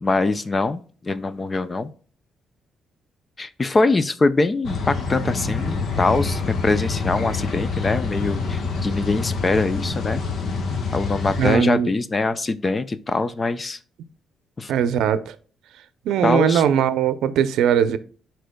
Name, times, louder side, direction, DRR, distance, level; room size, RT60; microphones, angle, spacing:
voice 1, 0.0-1.9 3.4-10.2 10.9-13.8 14.6-14.7 16.2-16.6, left 3 dB, 25° left, 0.4 m, -23 dB
sound 1, 4.6-11.6, left 4 dB, 65° left, 1.2 m, -26 dB
voice 2, 11.4-11.9 14.7-15.3 16.1-18.0, right 8 dB, 85° right, 0.6 m, -20 dB
11.5 x 4.5 x 2.2 m
cardioid pair, 115°, 0 cm